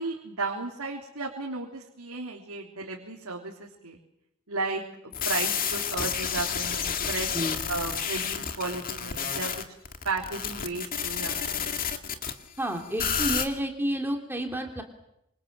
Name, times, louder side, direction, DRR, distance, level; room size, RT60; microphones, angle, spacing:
voice 1, 0.0-4.0 4.5-7.4 7.7-9.5 10.0-11.8, right 3 dB, 80° right, -1 dB, 3.6 m, -34 dB
sound 1, 5.1-12.3 13.0-13.4, left 7 dB, 40° left, 2.3 m, -30 dB
voice 2, 12.6-14.8, right 1 dB, 10° right, 3 dB, 3.0 m, -30 dB
27.0 x 26.5 x 7.5 m, 0.81 s
head